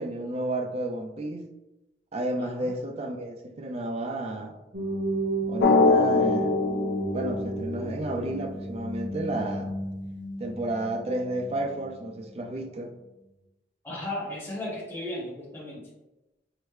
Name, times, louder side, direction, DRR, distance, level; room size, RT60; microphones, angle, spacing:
voice 1, 0.0-1.5 2.1-4.6 5.5-6.5 7.1-9.8 10.4-12.9, right 1 dB, 35° right, 4 dB, 0.4 m, -32 dB
voice 2, 2.4-2.7 13.8-15.9, left 1 dB, 10° left, -5 dB, 0.7 m, -35 dB
sound 1, 4.7-12.6, right 1 dB, 60° right, 1.2 m, -33 dB
Drum, 5.6-8.2, left 4 dB, 70° left, 0.3 m, -23 dB
4.7 x 2.1 x 3.1 m, 0.99 s
head